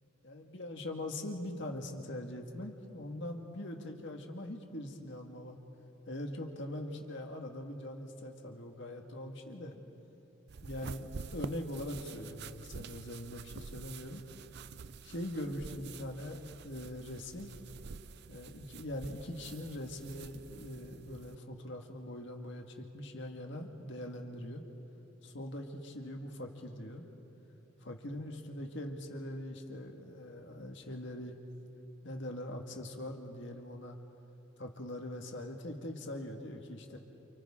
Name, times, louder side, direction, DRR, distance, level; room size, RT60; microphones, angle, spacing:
voice 1, 0.2-5.6 6.1-9.8 10.6-14.2 15.0-17.6 18.3-24.6 25.2-27.0 27.8-31.4 32.0-34.0 34.6-37.0, left 1 dB, 55° left, 3 dB, 1.8 m, -42 dB
sound 1, 10.5-21.4, right 5 dB, 50° right, 0.4 m, -48 dB
30.0 x 28.5 x 3.8 m, 2.9 s
head